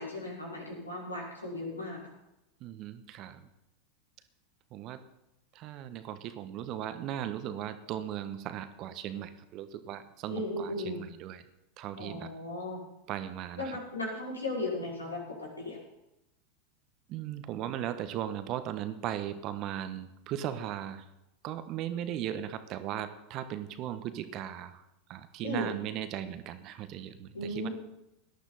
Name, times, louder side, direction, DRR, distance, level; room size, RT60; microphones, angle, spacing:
voice 1, 0.0-2.0 10.3-11.0 12.0-12.8 13.6-15.8 25.4-25.7 27.3-27.7, left 2 dB, 90° left, -4 dB, 5.6 m, -36 dB
voice 2, 2.6-3.5 4.7-5.0 5.5-11.4 11.8-12.3 13.1-13.8 17.1-21.0 21.4-24.8 25.1-27.7, right 11 dB, 45° right, 11 dB, 1.2 m, -37 dB
18.0 x 11.5 x 4.1 m, 0.90 s
figure-of-eight pair, 90°, 0 cm